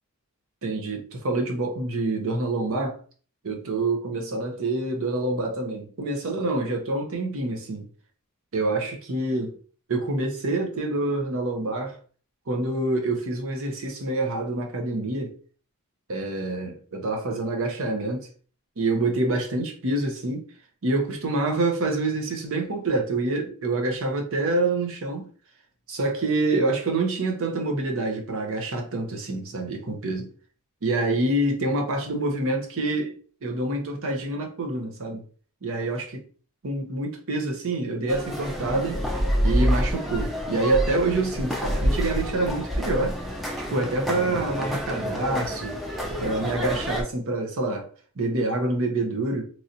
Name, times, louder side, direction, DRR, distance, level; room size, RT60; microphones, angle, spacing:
voice 1, 0.6-3.0 3.4-7.9 8.5-9.6 9.9-12.0 12.5-15.3 16.1-18.3 18.8-20.4 20.8-25.3 25.9-30.3 30.8-33.1 33.4-35.2 35.6-36.2 36.6-39.0 39.4-43.2 43.7-45.8 46.2-47.9 48.2-49.4, right 2 dB, 65° right, 0.8 m, -26 dB
sound 1, 38.1-47.0, equal, ahead, 0.4 m, -28 dB
3.1 x 2.7 x 2.6 m
head